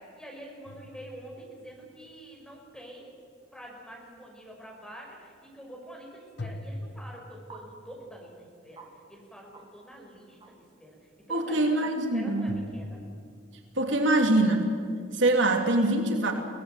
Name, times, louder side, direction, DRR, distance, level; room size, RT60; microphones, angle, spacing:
voice 1, 0.0-3.1 3.5-11.9 12.1-13.0, right 1 dB, 5° left, -1 dB, 5.6 m, -47 dB
sound 1, 0.7-1.8 6.4-7.9 12.5-13.6, left 1 dB, 60° left, 1.2 m, -42 dB
sound 2, 5.3-5.4 7.5-7.6 8.1-8.2 8.7-8.9 9.5-9.6 9.9-10.0 10.4-10.6, right 5 dB, 25° right, 3.3 m, -48 dB
voice 2, 11.3-12.5 13.8-14.7 15.1-16.3, right 2 dB, 75° right, 3 dB, 3.0 m, -24 dB
23.0 x 18.0 x 9.2 m, 2.2 s
head